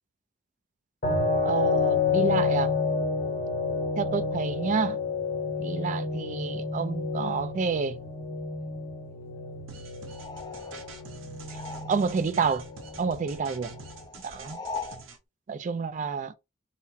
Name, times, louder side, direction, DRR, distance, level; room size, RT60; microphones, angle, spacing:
sound 1, 1.0-14.0, left 4 dB, 45° left, 1.1 m, -30 dB
voice 1, 1.4-2.7 4.0-5.0 5.6-8.0 11.9-12.6 13.0-13.8 14.2-14.6 15.5-16.3, right 5 dB, 40° right, 0.3 m, -29 dB
sound 2, 9.7-15.2, right 4 dB, 75° right, 0.8 m, -47 dB
sound 3, 10.1-12.3 12.6-15.1, left 4 dB, 20° left, 0.5 m, -41 dB
4.0 x 2.0 x 2.7 m
head